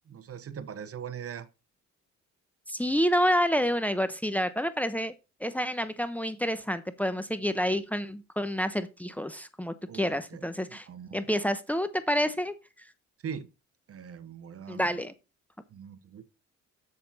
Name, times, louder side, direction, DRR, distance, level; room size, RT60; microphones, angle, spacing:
voice 1, 0.1-1.5 9.9-10.4 10.9-11.3 13.2-13.5 13.9-15.0 15.7-16.2, right 7 dB, 50° right, 0.9 m, -41 dB
voice 2, 2.7-5.1 5.4-10.9 11.1-12.5 14.7-15.1, equal, 5° left, 0.8 m, -28 dB
7.2 x 6.8 x 4.1 m
cardioid pair, 90°, 30 cm